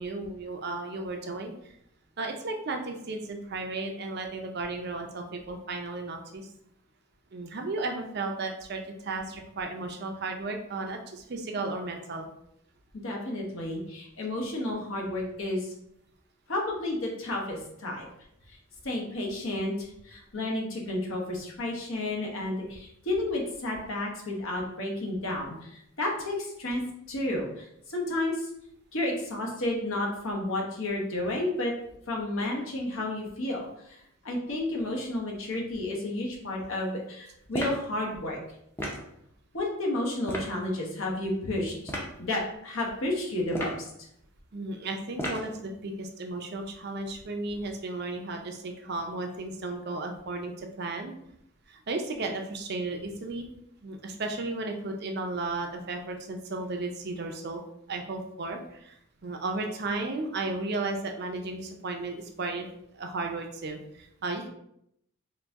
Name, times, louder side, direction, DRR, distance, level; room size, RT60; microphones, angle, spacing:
voice 1, 0.0-1.8 2.2-6.5 7.3-12.3 44.5-51.1 51.7-53.5 53.8-57.6 57.9-62.7 62.9-64.5, right 2 dB, 45° right, 4 dB, 0.5 m, -34 dB
voice 2, 13.0-15.7 16.5-18.1 18.5-18.6 18.8-26.8 27.1-28.5 28.9-31.7 32.1-34.0 34.2-38.4 39.5-43.9, left 1 dB, 65° left, -1 dB, 1.0 m, -31 dB
sound 1, 37.5-37.9 38.8-39.1 40.3-40.5 41.9-42.1 43.5-43.9 45.2-45.5, equal, 10° left, 0.5 m, -33 dB
4.0 x 2.6 x 3.5 m, 0.76 s
head